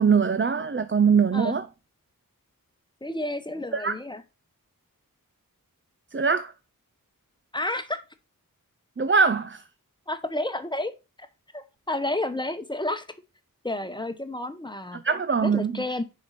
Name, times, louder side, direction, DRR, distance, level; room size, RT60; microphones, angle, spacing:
voice 1, 0.0-1.7 3.7-3.9 6.1-6.5 9.0-9.6 15.0-15.8, right 5 dB, 35° right, 0.5 m, -22 dB
voice 2, 3.0-4.2 7.5-8.0 10.1-10.9 11.5-13.0 13.6-15.0 15.4-16.0, left 1 dB, 15° left, 0.9 m, -30 dB
6.6 x 5.2 x 4.1 m
wide cardioid pair, 50°, 34 cm